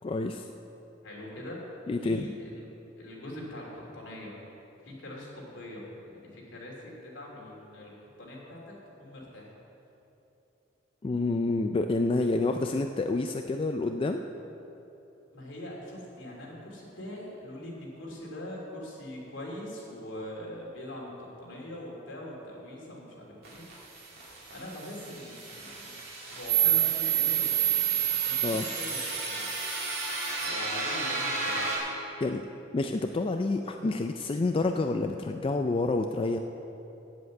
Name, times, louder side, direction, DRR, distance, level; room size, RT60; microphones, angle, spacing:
voice 1, 0.0-0.5 1.9-2.3 11.0-14.2 28.4-28.7 32.2-32.4 32.7-36.4, left 3 dB, 30° left, 5 dB, 0.3 m, -28 dB
voice 2, 1.0-1.6 2.0-2.5 3.0-4.3 4.8-7.9 8.2-9.5 12.2-12.4 12.7-12.8 15.3-23.6 24.5-25.9 26.3-28.0 28.2-29.5 30.4-31.7, left 1 dB, 70° left, -3 dB, 2.7 m, -42 dB
sound 1, 23.5-31.8, right 7 dB, 55° right, 2.6 m, -29 dB
7.9 x 7.8 x 8.3 m, 2.9 s
head